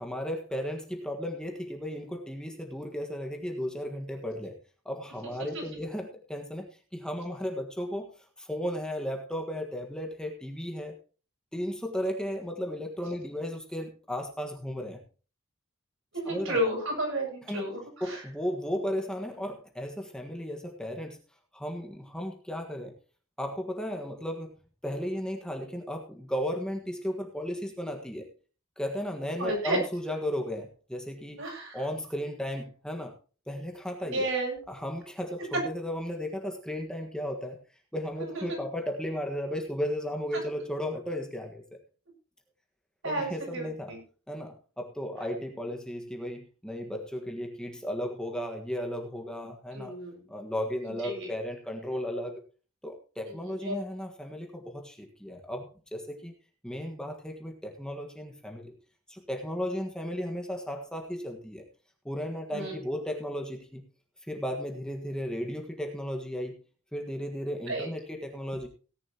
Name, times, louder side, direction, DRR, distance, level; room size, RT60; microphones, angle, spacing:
voice 1, 0.0-4.6 4.8-8.1 8.4-10.9 11.5-15.0 16.3-16.7 17.5-17.7 18.0-21.2 21.5-22.9 23.4-24.5 24.8-28.3 28.8-31.4 31.7-33.1 33.5-34.3 34.7-37.6 37.9-41.8 43.0-44.0 44.3-49.9 50.3-52.4 52.8-56.3 56.6-58.7 59.1-61.6 62.0-63.8 64.3-66.5 66.9-68.7, equal, 5° left, 3 dB, 1.5 m, -35 dB
voice 2, 16.1-18.2 29.4-29.8 31.4-31.8 34.0-34.6 35.4-35.5 38.2-38.6 40.3-40.4 43.0-44.0 45.2-45.3 49.7-50.2 50.8-51.3 53.3-53.8 62.5-62.7 67.7-67.9, right 1 dB, 65° right, 0 dB, 7.2 m, -32 dB
17.5 x 10.5 x 2.9 m, 0.37 s
head